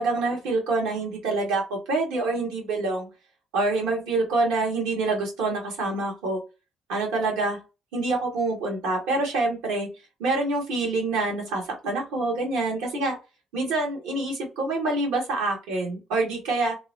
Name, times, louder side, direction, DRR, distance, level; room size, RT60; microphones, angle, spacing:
voice 1, 0.0-3.1 3.5-6.4 6.9-7.6 7.9-9.9 10.2-13.2 13.5-16.8, right 2 dB, 80° right, 0 dB, 1.3 m, -26 dB
2.9 x 2.1 x 2.6 m, 0.28 s
hypercardioid pair, 60°, 0 cm